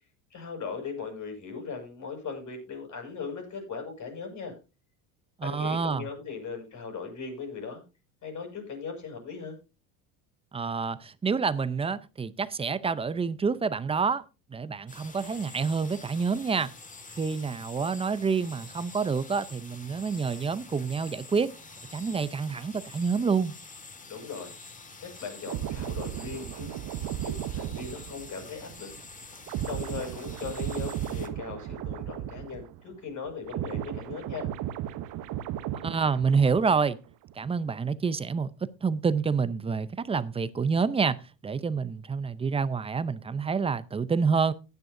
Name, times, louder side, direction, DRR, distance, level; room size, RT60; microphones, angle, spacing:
voice 1, 0.3-4.5 5.4-7.8 8.2-9.6 24.1-24.5 25.0-26.7 27.2-28.9 29.6-34.5, left 5 dB, 40° left, 6.5 m, -38 dB
voice 2, 5.4-6.1 10.5-14.2 14.5-16.7 17.1-21.5 21.9-23.5 35.8-37.0 37.4-38.5 38.8-41.2 41.4-44.5, right 5 dB, 15° right, 0.5 m, -28 dB
sound 1, 14.9-31.3, left 3 dB, 15° left, 1.9 m, -47 dB
sound 2, 25.5-33.0 33.2-36.9 37.2-37.5, right 11 dB, 45° right, 0.9 m, -35 dB
15.5 x 11.0 x 2.6 m
supercardioid pair, 120°, 44 cm